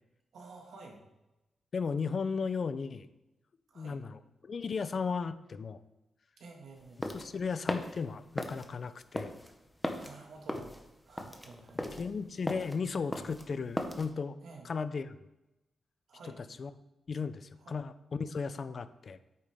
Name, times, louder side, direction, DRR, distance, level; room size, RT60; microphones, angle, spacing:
voice 1, 0.3-1.0 3.7-4.0 6.4-7.0 10.0-10.7 11.1-11.8 14.4-14.7 16.1-16.4 17.6-17.8, right 3 dB, 70° right, 0 dB, 1.9 m, -50 dB
voice 2, 1.7-3.1 3.8-5.8 7.1-9.3 11.8-14.4 14.6-15.2 16.4-16.7 17.1-19.2, left 5 dB, 40° left, 13 dB, 0.4 m, -35 dB
sound 1, 6.8-14.1, left 1 dB, 5° left, 0.7 m, -38 dB
8.7 x 8.4 x 3.6 m, 0.96 s
wide cardioid pair, 175°, 0 cm